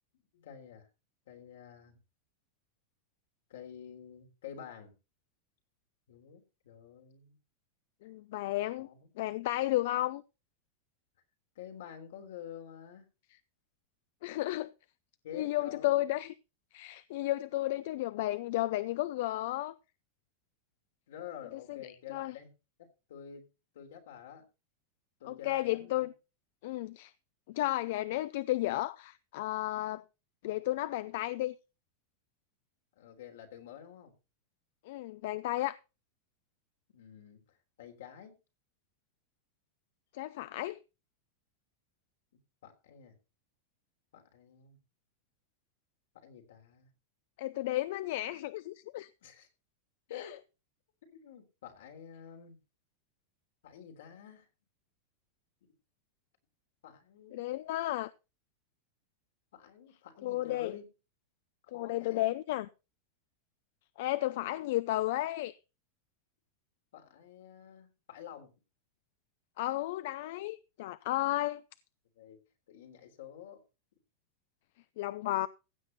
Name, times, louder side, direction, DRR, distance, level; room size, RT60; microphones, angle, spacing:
voice 1, 0.3-0.9 1.3-2.0 3.5-5.0 6.1-7.4 8.8-9.1 11.6-13.1 15.2-16.1 21.1-23.5 23.7-24.5 25.2-26.1 33.0-34.1 36.9-38.4 42.6-43.2 44.1-44.8 46.1-46.9 49.2-49.5 50.1-50.3 51.1-52.6 53.6-54.5 56.8-57.4 59.5-60.9 61.7-62.3 66.9-68.5 72.2-73.6, left 9 dB, 85° left, 3.6 m, -49 dB
voice 2, 8.0-8.9 9.2-10.2 14.2-14.7 15.3-16.3 16.7-19.7 21.7-21.8 22.1-22.3 25.3-26.1 26.6-27.1 27.5-30.0 30.4-31.5 34.9-35.8 40.1-40.8 47.4-49.1 50.1-50.3 57.3-58.1 60.2-60.8 61.7-62.7 64.0-65.6 69.6-71.6 75.0-75.5, left 16 dB, 65° left, 0.5 m, -33 dB
15.5 x 7.9 x 4.1 m
supercardioid pair, 150°, 0 cm